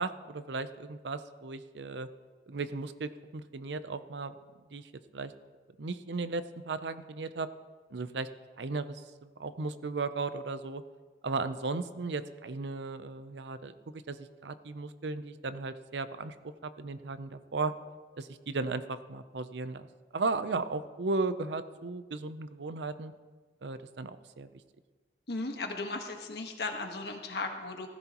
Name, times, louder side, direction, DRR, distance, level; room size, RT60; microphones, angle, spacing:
voice 1, 0.0-2.1 2.5-4.3 4.7-5.3 5.8-7.5 7.9-8.3 8.6-10.8 11.2-16.3 16.6-17.7 18.2-19.9 20.1-23.1 23.6-24.5, right 3 dB, 80° right, 12 dB, 0.6 m, -36 dB
voice 2, 25.3-27.9, left 3 dB, 65° left, 3 dB, 1.5 m, -36 dB
16.0 x 14.5 x 3.0 m, 1.4 s
head